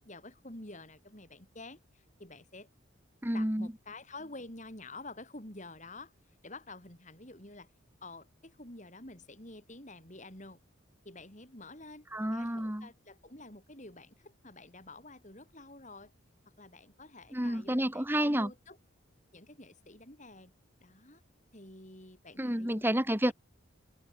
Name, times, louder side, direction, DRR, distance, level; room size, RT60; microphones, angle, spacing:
voice 1, 0.0-2.7 3.3-6.1 6.4-7.7 8.0-10.6 11.0-16.1 16.6-18.8 19.3-20.5 20.8-21.2 21.5-22.9, left 2 dB, 35° left, 4.5 m, -49 dB
voice 2, 3.2-3.7 12.1-12.9 17.3-18.5 22.4-23.3, right 1 dB, 10° right, 2.3 m, -30 dB
head